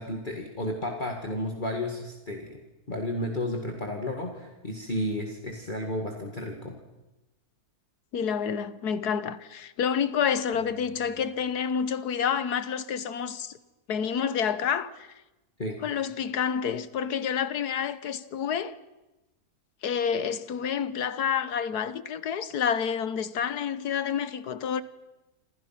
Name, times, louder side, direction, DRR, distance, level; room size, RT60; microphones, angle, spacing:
voice 1, 0.0-2.6 2.9-6.8 15.6-15.8, left 1 dB, 30° left, 2.3 m, -32 dB
voice 2, 8.1-13.5 13.9-15.1 15.8-18.7 19.8-24.8, left 7 dB, 85° left, 1.6 m, -28 dB
sound 1, 10.5-12.3, right 2 dB, 85° right, 2.9 m, -54 dB
28.5 x 26.5 x 5.9 m
omnidirectional pair, 1.6 m